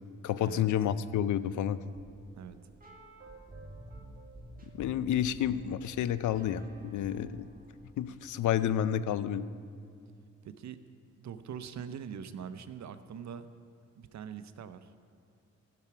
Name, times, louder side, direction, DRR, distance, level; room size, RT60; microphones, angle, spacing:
voice 1, 0.2-1.8 4.8-7.5 8.0-9.5, left 10 dB, 80° left, 15 dB, 0.5 m, -30 dB
sound 1, 1.7-8.2, right 1 dB, 30° right, 2.3 m, -51 dB
voice 2, 10.4-10.8 11.2-13.5 14.0-14.9, right 7 dB, 65° right, 11 dB, 0.7 m, -43 dB
15.0 x 5.9 x 5.9 m, 2.3 s
cardioid pair, 65°, 30 cm